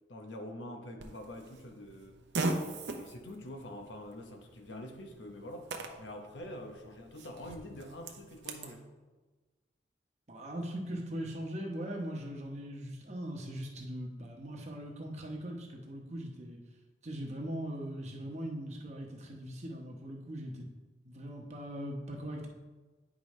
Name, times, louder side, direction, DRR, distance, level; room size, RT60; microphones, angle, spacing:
voice 1, 0.1-2.2 2.9-8.9, left 1 dB, 85° left, 4 dB, 0.9 m, -46 dB
Fart, 1.0-8.7, right 2 dB, 80° right, 0.7 m, -41 dB
voice 2, 10.3-16.6 17.0-20.7 21.0-22.5, right 1 dB, 40° right, 1 dB, 1.0 m, -40 dB
9.5 x 5.1 x 3.2 m, 1.3 s
head